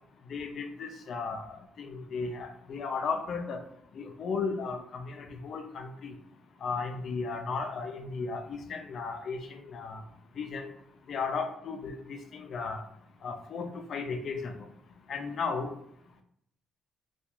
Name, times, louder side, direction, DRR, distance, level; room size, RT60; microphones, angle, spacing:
voice 1, 0.3-1.4 1.8-3.6 4.0-6.1 6.6-10.0 10.4-10.7 11.1-12.8 13.2-14.5 15.1-15.7, left 4 dB, 60° left, 5 dB, 0.4 m, -35 dB
2.3 x 2.2 x 2.9 m, 0.70 s
cardioid pair, 90°, 0 cm